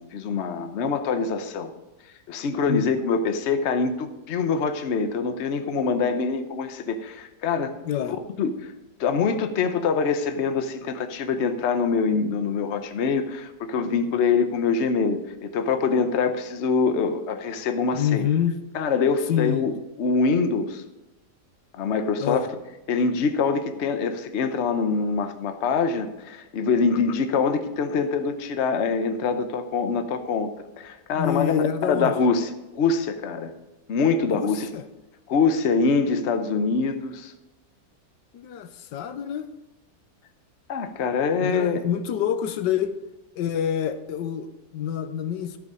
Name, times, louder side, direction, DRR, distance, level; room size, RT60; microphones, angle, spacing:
voice 1, 0.0-1.7 2.3-7.7 8.4-8.7 9.0-18.3 18.7-20.8 21.7-22.5 22.9-30.5 30.8-33.5 33.9-34.7 35.3-37.3 40.7-41.8, left 5 dB, 50° left, 8 dB, 1.0 m, -24 dB
voice 2, 7.8-8.2 17.9-18.6 19.3-19.7 22.2-22.5 31.1-32.1 34.3-34.8 38.3-39.5 41.4-43.0 43.3-45.6, left 9 dB, 85° left, 10 dB, 1.4 m, -27 dB
13.5 x 6.8 x 4.9 m, 1.0 s
omnidirectional pair, 1.9 m